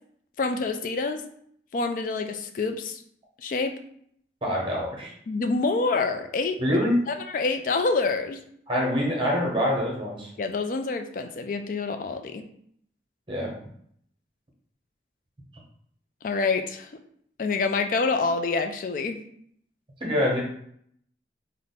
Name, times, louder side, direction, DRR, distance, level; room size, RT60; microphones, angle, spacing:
voice 1, 0.4-1.3 1.7-3.0 3.4-3.8 5.3-6.8 7.1-8.4 10.4-12.5 16.2-16.9 17.4-19.2, left 3 dB, 45° left, 7 dB, 0.3 m, -27 dB
voice 2, 4.4-5.1 6.6-7.0 8.7-10.3 13.3-13.5 20.0-20.4, equal, 30° right, -3 dB, 1.0 m, -25 dB
3.5 x 2.1 x 3.9 m, 0.67 s
head